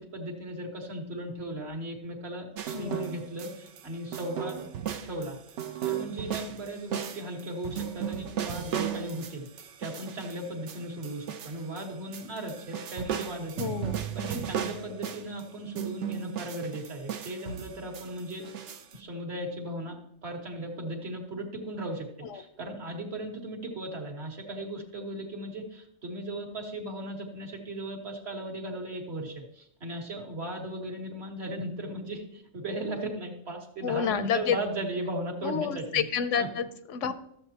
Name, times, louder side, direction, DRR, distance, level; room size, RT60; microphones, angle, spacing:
voice 1, 0.0-4.6 5.0-5.4 5.8-9.5 9.8-13.7 14.1-18.5 18.9-22.1 22.3-36.1 36.4-36.5, right 1 dB, 60° right, 1 dB, 1.6 m, -37 dB
sound 1, 2.5-3.8 4.1-11.8 12.1-15.4 15.8-18.9, right 9 dB, 75° right, 0.9 m, -35 dB
voice 2, 2.7-3.1 13.6-14.0 22.2-22.4 33.8-34.6 35.4-37.1, left 7 dB, 80° left, 12 dB, 1.0 m, -29 dB
13.0 x 7.1 x 2.9 m, 0.72 s
omnidirectional pair, 1.2 m